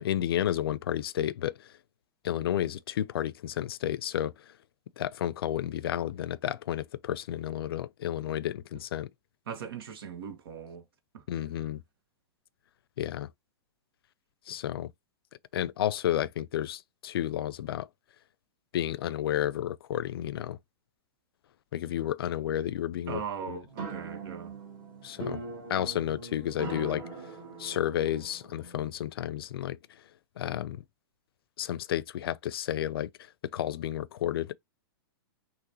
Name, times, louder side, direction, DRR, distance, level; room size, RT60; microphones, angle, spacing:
voice 1, 0.0-1.5 2.2-4.3 5.0-9.1 11.3-11.8 13.0-13.3 14.5-14.9 15.5-17.9 18.7-20.6 21.7-23.2 23.5-23.6 25.0-25.4 25.7-27.0 27.6-29.8 30.4-30.8 31.6-33.1 33.5-34.5, left 11 dB, 70° left, 0.5 m, -31 dB
voice 2, 9.5-10.8 11.1-11.2 23.1-24.5, right 7 dB, 70° right, 1.7 m, -39 dB
sound 1, 23.7-28.9, right 3 dB, 30° right, 2.1 m, -41 dB
6.0 x 3.0 x 3.0 m
hypercardioid pair, 150°, 13 cm